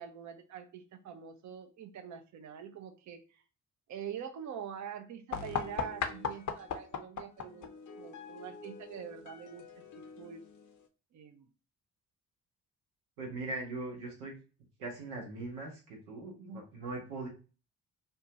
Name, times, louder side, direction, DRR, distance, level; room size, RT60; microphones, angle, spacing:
voice 1, 0.0-3.4 3.9-7.7 8.0-10.4 11.1-11.5, right 8 dB, 45° right, 0.6 m, -45 dB
sound 1, 5.3-10.9, left 7 dB, 45° left, 0.6 m, -40 dB
voice 2, 13.2-14.4 14.8-17.3, right 2 dB, 85° right, 0.9 m, -40 dB
2.6 x 2.2 x 2.7 m
hypercardioid pair, 45°, 43 cm